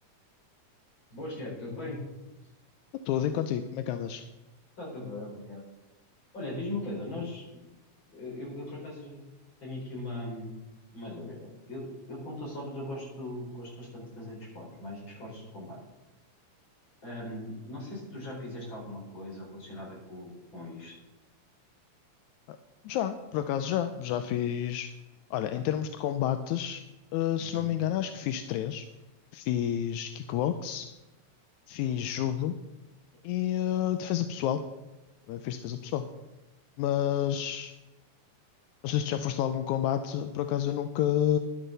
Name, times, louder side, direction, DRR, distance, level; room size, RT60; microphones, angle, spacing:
voice 1, 1.1-2.0 4.8-5.6 6.3-7.4 8.1-9.2 9.6-10.6 10.9-15.8 17.0-20.9 27.4-27.7, left 1 dB, 40° left, -3 dB, 5.3 m, -39 dB
voice 2, 3.1-4.2 22.5-22.6 22.9-24.9 25.3-26.8 27.1-28.9 29.3-30.9 31.7-32.6 33.2-34.6 35.3-36.0 36.8-37.7 38.8-41.4, left 10 dB, 85° left, 9 dB, 2.0 m, -29 dB
12.0 x 11.0 x 4.1 m, 1.0 s
omnidirectional pair, 3.3 m